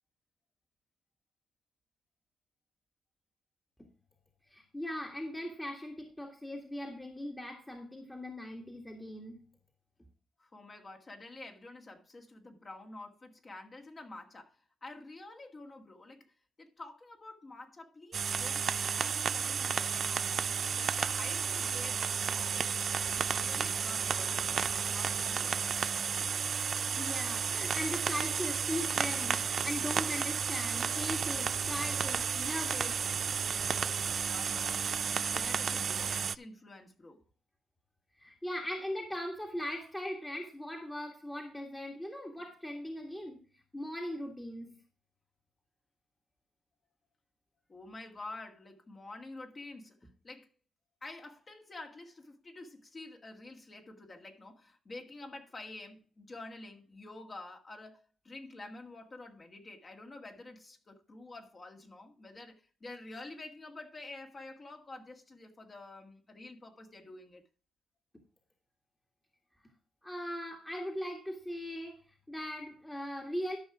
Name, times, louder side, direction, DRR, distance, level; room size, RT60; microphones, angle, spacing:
voice 1, 4.5-9.4 27.0-33.1 38.2-43.4 43.7-44.7 70.0-72.0 72.3-73.6, left 1 dB, 10° left, 1.8 m, -39 dB
voice 2, 10.4-20.3 20.7-22.8 23.2-24.6 24.9-25.6 34.0-34.8 35.2-37.2 47.7-50.0 50.2-50.5 51.0-67.4, left 2 dB, 35° left, 2.0 m, -49 dB
sound 1, 18.1-36.4, right 6 dB, 45° right, 0.4 m, -32 dB
12.5 x 5.6 x 4.9 m
cardioid pair, 90°, 0 cm